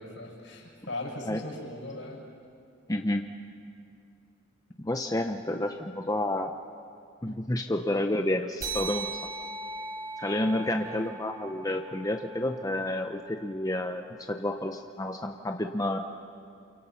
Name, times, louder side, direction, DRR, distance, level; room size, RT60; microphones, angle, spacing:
voice 1, 0.0-2.2 10.8-11.0, left 2 dB, 65° left, -1 dB, 7.0 m, -39 dB
voice 2, 2.9-3.2 4.8-6.6 7.2-9.2 10.2-16.0, left 1 dB, 15° left, 4 dB, 0.8 m, -30 dB
sound 1, 8.6-13.5, right 4 dB, 45° right, 7.0 m, -39 dB
28.5 x 28.5 x 5.9 m, 2.4 s
head